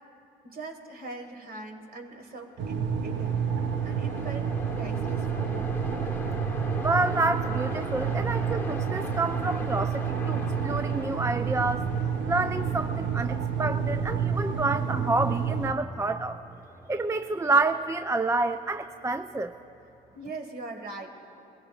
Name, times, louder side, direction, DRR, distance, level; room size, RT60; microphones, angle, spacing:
voice 1, 0.4-3.4 3.8-5.7 20.1-21.1, right 3 dB, 50° right, 4 dB, 1.8 m, -41 dB
Train, 2.3-19.5, left 2 dB, 10° left, 1.1 m, -41 dB
sound 1, 2.6-15.7, right 7 dB, 65° right, 0.9 m, -29 dB
voice 2, 6.8-11.9 12.3-16.4 16.9-19.5, right 2 dB, 15° right, 9 dB, 0.4 m, -28 dB
21.0 x 16.0 x 2.5 m, 2.8 s
hypercardioid pair, 55°, 21 cm